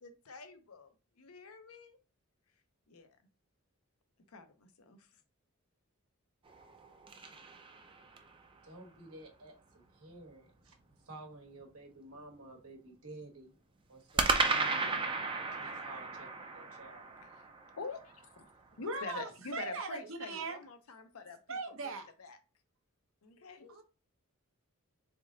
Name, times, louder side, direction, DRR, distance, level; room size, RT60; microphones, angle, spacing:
voice 1, 0.0-2.0 2.9-3.2 4.3-5.1 17.4-17.5 17.8-18.5 18.8-21.6 21.8-21.9 22.2-22.4 23.2-23.8, left 4 dB, 85° left, 0.7 m, -46 dB
sound 1, 6.5-8.4 14.2-18.4, right 4 dB, 25° right, 0.4 m, -34 dB
voice 2, 8.6-13.6 13.9-17.1, right 2 dB, 90° right, 1.2 m, -52 dB
voice 3, 18.8-20.6 21.5-22.1 23.7-23.8, right 4 dB, 70° right, 0.8 m, -39 dB
3.8 x 3.5 x 2.7 m
head